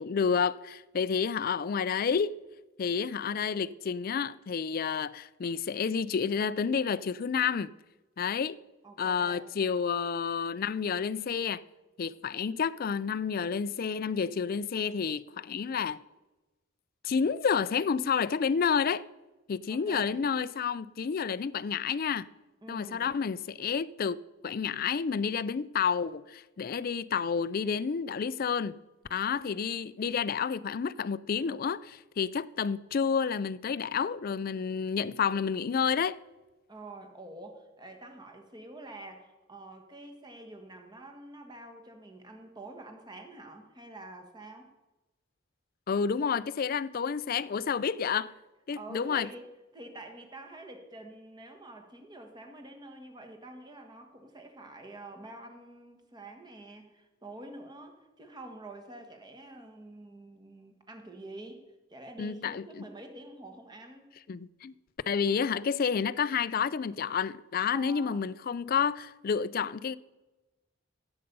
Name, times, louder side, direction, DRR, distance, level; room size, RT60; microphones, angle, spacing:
voice 1, 0.0-2.3 2.8-7.7 8.2-8.6 9.0-11.6 12.0-16.0 17.0-19.0 19.5-22.3 22.7-28.8 29.1-36.2 45.9-48.3 48.7-49.3 62.2-62.8 64.3-64.7 65.1-70.0, left 6 dB, 45° left, 0.4 m, -30 dB
voice 2, 8.8-9.5 19.7-20.2 22.6-23.0 36.7-44.7 48.8-49.4 49.7-61.6 61.9-64.1 67.7-68.2, right 2 dB, 20° right, 1.5 m, -47 dB
15.5 x 8.0 x 5.4 m
head